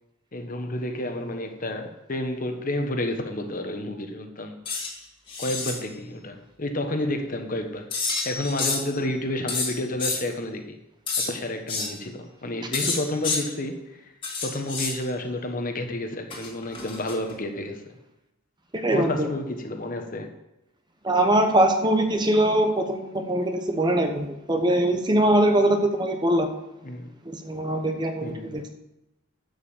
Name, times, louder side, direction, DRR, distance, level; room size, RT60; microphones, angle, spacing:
voice 1, 0.3-4.6 5.4-7.9 8.2-10.8 11.2-14.0 14.4-18.0 18.9-20.3 26.8-27.1 28.2-28.6, left 1 dB, 40° left, 5 dB, 1.2 m, -30 dB
sound 1, 4.7-4.9 5.3-5.8 7.9-8.9 9.5-10.2 11.1-11.3 11.7-11.9 12.7-13.4 14.2-15.0 16.3-17.4, left 4 dB, 25° left, 2.1 m, -28 dB
voice 2, 18.7-19.3 21.0-26.5 27.3-28.7, right 1 dB, 20° right, 5 dB, 0.9 m, -22 dB
11.5 x 5.5 x 7.1 m, 0.95 s
head